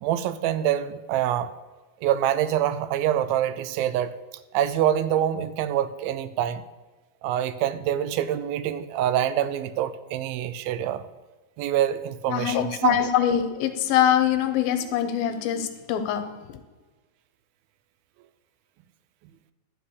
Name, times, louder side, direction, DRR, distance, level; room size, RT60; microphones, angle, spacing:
voice 1, 0.0-1.5 2.0-4.2 4.5-6.6 7.2-11.1 11.6-13.1, right 11 dB, 85° right, 14 dB, 2.3 m, -25 dB
voice 2, 12.3-16.2 16.5-16.6, left 10 dB, 85° left, 8 dB, 2.7 m, -23 dB
11.5 x 4.9 x 8.4 m, 1.2 s
omnidirectional pair, 4.2 m